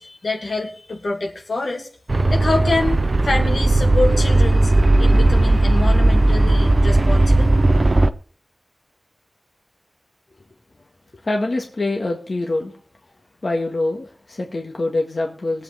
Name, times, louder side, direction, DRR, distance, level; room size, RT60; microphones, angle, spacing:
voice 1, 0.0-1.9 2.3-4.7 5.0-7.5, left 3 dB, 85° left, 1 dB, 2.3 m, -26 dB
sound 1, 2.1-8.1, right 2 dB, 50° right, 0.7 m, -16 dB
voice 2, 11.2-12.7 13.4-15.6, left 2 dB, 60° left, 1 dB, 1.7 m, -24 dB
21.0 x 8.0 x 3.5 m, 0.44 s
wide cardioid pair, 65°, 0 cm